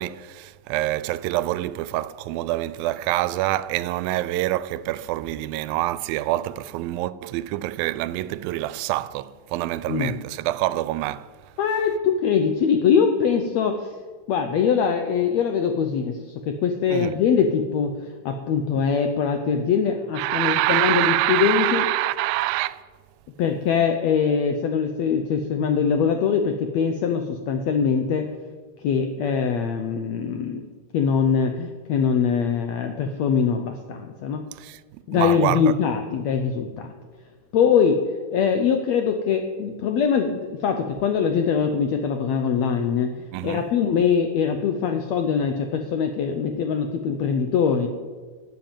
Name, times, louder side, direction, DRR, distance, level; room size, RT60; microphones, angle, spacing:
voice 1, 0.0-11.3 16.9-17.1 20.2-22.8 34.6-35.7 43.3-43.7, right 16 dB, 90° right, 2.3 m, -26 dB
voice 2, 11.6-14.0 14.3-21.8 23.4-28.3 28.8-30.6 30.9-34.4 35.1-36.9 37.5-38.0 38.3-47.9, left 6 dB, 80° left, 1.5 m, -22 dB
12.5 x 7.5 x 9.0 m
omnidirectional pair, 4.1 m